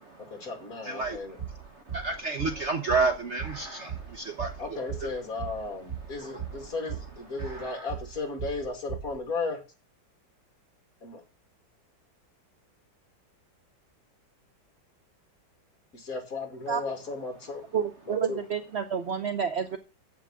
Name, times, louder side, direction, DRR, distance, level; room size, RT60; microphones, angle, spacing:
voice 1, 0.3-1.4 4.6-9.6 11.0-11.2 15.9-17.6 18.1-18.4, left 3 dB, 50° left, 3 dB, 2.8 m, -35 dB
voice 2, 0.8-1.2 1.5-1.6 1.9-4.8 6.2-6.4, right 3 dB, 50° right, 7 dB, 0.9 m, -30 dB
sound 1, 1.0-9.2, right 8 dB, 35° right, 4.1 m, -38 dB
voice 3, 17.7-19.8, right 7 dB, 85° right, 9 dB, 0.5 m, -29 dB
7.6 x 5.9 x 7.4 m, 0.33 s
omnidirectional pair, 2.0 m